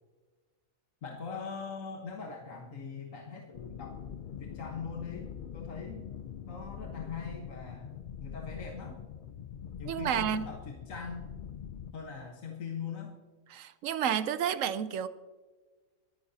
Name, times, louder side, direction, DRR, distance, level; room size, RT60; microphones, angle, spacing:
voice 1, 1.0-4.0 4.4-6.0 6.5-9.0 9.8-11.2 11.9-13.1, left 5 dB, 65° left, 0 dB, 1.6 m, -42 dB
sound 1, 3.5-11.9, left 8 dB, 80° left, 0.4 m, -43 dB
voice 2, 9.9-10.5 13.5-15.1, right 9 dB, 70° right, 13 dB, 1.0 m, -30 dB
23.0 x 10.5 x 2.8 m, 1.3 s
omnidirectional pair, 1.5 m